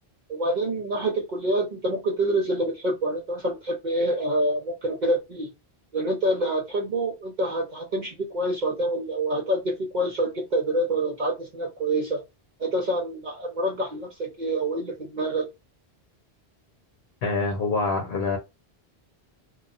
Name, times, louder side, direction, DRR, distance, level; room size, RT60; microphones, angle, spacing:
voice 1, 0.3-5.5 5.9-12.2 12.6-15.5, right 1 dB, 50° right, 0.7 m, -26 dB
voice 2, 17.2-18.4, left 3 dB, 65° left, 0.9 m, -25 dB
2.7 x 2.3 x 2.4 m
omnidirectional pair, 1.1 m